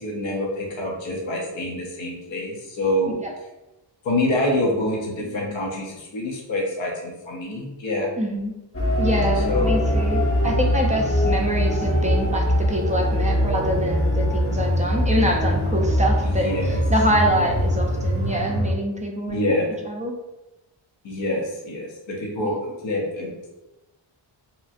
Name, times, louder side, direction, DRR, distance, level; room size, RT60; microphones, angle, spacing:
voice 1, 0.0-3.2 4.0-8.1 9.3-9.7 16.2-16.8 19.3-19.8 21.0-23.5, left 1 dB, 65° left, -1 dB, 0.7 m, -26 dB
voice 2, 8.2-8.5 9.0-19.5 19.9-20.2 22.4-22.5, equal, 15° right, 1 dB, 0.4 m, -25 dB
sound 1, 8.7-18.7, equal, 30° left, 0.6 m, -22 dB
2.9 x 2.5 x 2.4 m, 1.0 s
wide cardioid pair, 85°, 49 cm